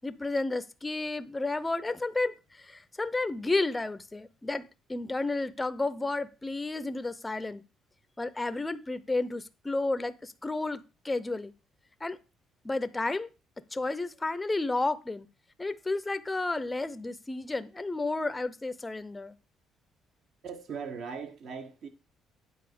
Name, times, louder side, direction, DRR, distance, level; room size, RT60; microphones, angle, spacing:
voice 1, 0.0-7.6 8.2-11.5 12.0-12.2 12.6-13.3 13.7-15.3 15.6-19.4, left 2 dB, 15° left, 0.6 m, -32 dB
voice 2, 20.4-21.9, right 6 dB, 55° right, 1.4 m, -39 dB
9.2 x 4.1 x 6.8 m
cardioid pair, 135°, 0 cm